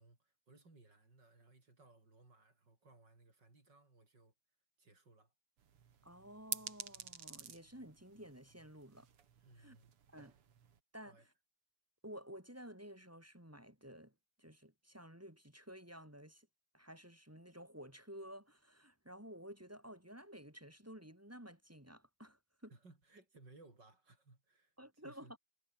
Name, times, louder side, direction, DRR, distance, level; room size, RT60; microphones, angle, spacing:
voice 1, 0.0-4.3 4.8-5.3 9.4-9.9 11.0-11.3 22.7-25.3, right 3 dB, 50° right, 6.0 m, -63 dB
sound 1, 5.6-10.8, right 8 dB, 90° right, 3.0 m, -50 dB
voice 2, 6.0-9.1 9.6-9.8 10.1-10.3 10.9-11.3 12.0-14.1 14.4-16.5 16.7-22.7 24.8-25.4, equal, 5° right, 2.9 m, -53 dB
omnidirectional pair, 2.4 m